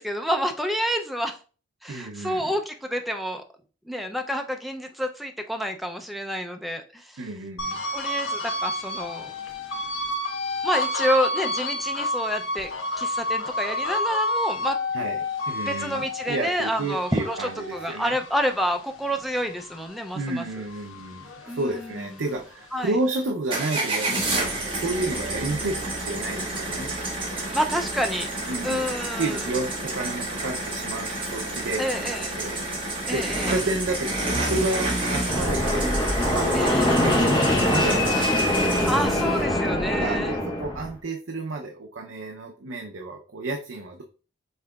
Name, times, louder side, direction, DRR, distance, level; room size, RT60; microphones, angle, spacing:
voice 1, 0.0-1.4 1.8-3.4 3.9-7.2 7.9-9.3 10.6-12.7 13.0-14.8 15.7-20.4 21.5-21.9 22.7-22.9 27.5-28.3 28.6-29.5 31.8-32.3 33.1-33.6 36.5-36.9 38.9-40.3, equal, ahead, 4 dB, 0.4 m, -28 dB
voice 2, 1.9-2.5 7.2-8.1 14.9-18.2 20.1-26.9 28.4-28.9 29.2-32.6 33.1-38.8 39.9-44.0, right 2 dB, 70° right, 2 dB, 0.5 m, -31 dB
sound 1, 7.6-20.2 20.6-22.3, left 2 dB, 85° left, 0.9 m, -30 dB
sound 2, 23.5-39.4, right 2 dB, 25° right, 1.2 m, -29 dB
Fixed-wing aircraft airplane, 35.2-40.9, left 1 dB, 20° left, 0.7 m, -23 dB
5.6 x 3.7 x 2.3 m, 0.36 s
head